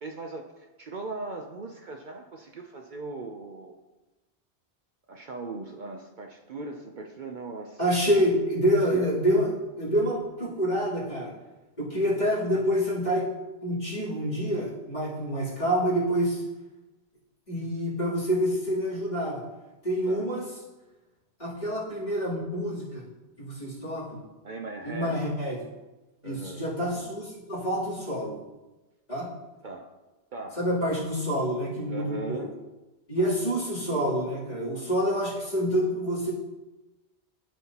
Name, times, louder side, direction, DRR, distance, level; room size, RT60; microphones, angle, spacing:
voice 1, 0.0-3.8 5.1-7.8 8.9-9.0 20.1-20.3 24.4-25.2 26.2-26.6 29.6-29.9 30.3-30.6 31.9-32.5 33.2-33.3, right 3 dB, 55° right, 3 dB, 0.7 m, -39 dB
voice 2, 7.8-11.3 11.8-13.3 13.6-16.4 17.5-19.4 19.8-20.5 21.4-23.0 23.4-24.2 24.8-25.6 26.2-28.4 29.1-29.3 30.6-32.4 33.1-36.3, equal, 40° left, -9 dB, 3.2 m, -27 dB
13.5 x 5.5 x 2.9 m, 1.1 s
omnidirectional pair, 1.1 m